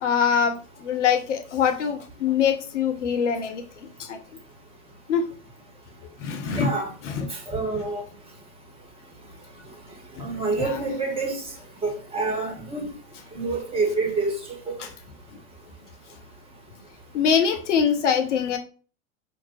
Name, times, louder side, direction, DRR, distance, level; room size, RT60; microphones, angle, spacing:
voice 1, 0.0-4.2 5.1-5.2 6.2-6.7 7.1-7.3 10.2-10.3 10.6-10.9 17.1-18.6, left 7 dB, 60° left, 0.7 m, -24 dB
voice 2, 6.6-6.9 7.5-8.0 10.2-11.4 11.8-12.9 13.3-14.3 14.7-14.8, right 3 dB, 15° right, 1.3 m, -27 dB
5.8 x 2.6 x 3.1 m
figure-of-eight pair, 90°, 40 cm